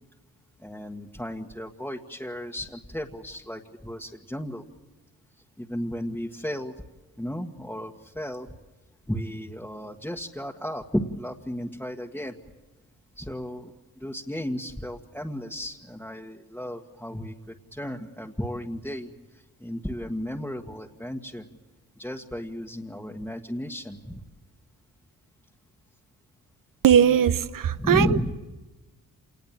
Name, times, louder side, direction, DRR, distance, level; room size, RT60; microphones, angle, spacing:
voice 1, 0.6-4.6 5.6-6.7 7.2-8.5 9.1-12.4 13.1-21.5 22.0-24.2 27.7-28.3, equal, 5° left, 1.6 m, -34 dB
voice 2, 26.8-28.1, right 8 dB, 65° right, 1.0 m, -19 dB
27.0 x 19.5 x 7.5 m
cardioid pair, 55°, 36 cm